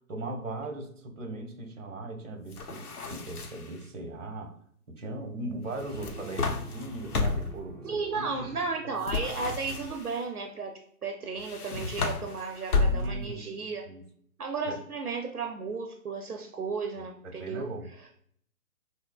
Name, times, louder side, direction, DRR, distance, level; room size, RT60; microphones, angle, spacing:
voice 1, 0.1-4.6 4.9-8.5 12.8-14.0 14.7-14.8 17.2-17.9, right 1 dB, 60° right, 4 dB, 1.0 m, -39 dB
sound 1, 2.5-3.8 5.8-7.6 9.0-10.2 11.4-13.3, left 3 dB, 85° left, 0.7 m, -31 dB
sound 2, 5.8-9.4, right 1 dB, 25° right, 0.9 m, -48 dB
voice 2, 7.8-13.9 14.4-17.7, right 4 dB, 85° right, 3 dB, 0.7 m, -34 dB
5.9 x 2.1 x 2.2 m, 0.65 s
figure-of-eight pair, 135°, 44 cm